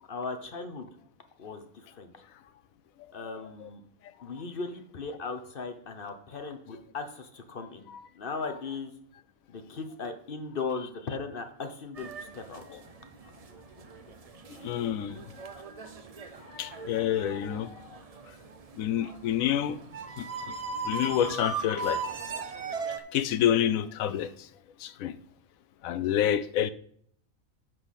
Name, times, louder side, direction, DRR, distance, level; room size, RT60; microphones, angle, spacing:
voice 1, 0.1-0.9 1.4-2.2 3.1-3.8 4.2-7.9 8.1-8.9 9.5-12.8, left 4 dB, 45° left, 0.9 m, -37 dB
sound 1, 11.9-23.0, right 4 dB, 45° right, 0.5 m, -39 dB
voice 2, 14.5-15.2 16.5-17.8 18.8-19.8 20.2-20.6 20.8-22.0 22.3-22.5 23.1-24.5 24.8-25.2 25.8-26.7, left 10 dB, 80° left, 1.0 m, -28 dB
9.0 x 4.1 x 6.4 m
omnidirectional pair, 1.5 m